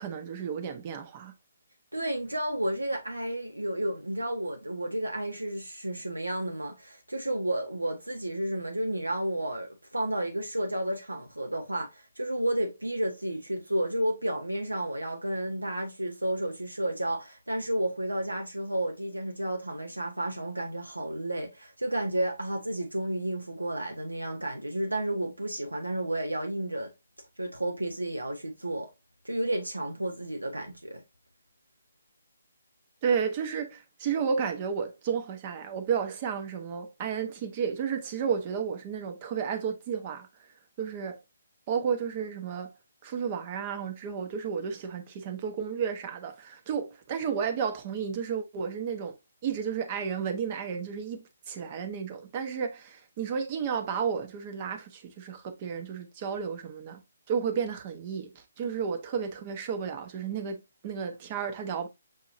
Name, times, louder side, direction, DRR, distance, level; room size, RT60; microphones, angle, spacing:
voice 1, 0.0-1.3 33.0-40.3 40.8-41.2 41.7-42.7 43.0-49.2 49.4-57.0 57.3-61.9, right 7 dB, 30° right, 0.9 m, -32 dB
voice 2, 1.9-26.9 27.4-28.9 29.2-31.0, right 1 dB, 85° right, 0.9 m, -31 dB
6.5 x 2.8 x 2.6 m
figure-of-eight pair, 140°, 0 cm